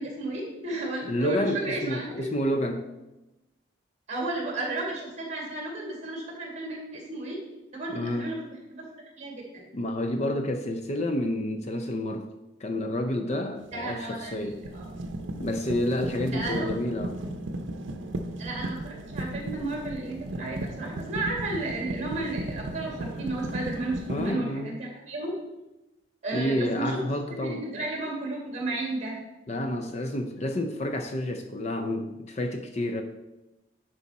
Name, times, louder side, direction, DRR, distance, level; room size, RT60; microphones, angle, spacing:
voice 1, 0.0-2.4 4.1-7.4 7.7-8.9 9.2-9.7 13.7-14.8 16.3-16.7 18.4-25.3 26.2-27.0 27.3-29.2, right 2 dB, 35° right, -1 dB, 2.1 m, -33 dB
voice 2, 1.0-2.9 7.9-8.3 9.7-12.3 12.6-14.6 15.4-17.2 24.1-24.8 26.3-27.6 29.5-33.0, left 1 dB, 35° left, 6 dB, 0.5 m, -29 dB
sound 1, 13.7-13.9 14.3-24.3, right 1 dB, 80° right, 0.7 m, -35 dB
9.9 x 4.8 x 4.2 m, 1.0 s
head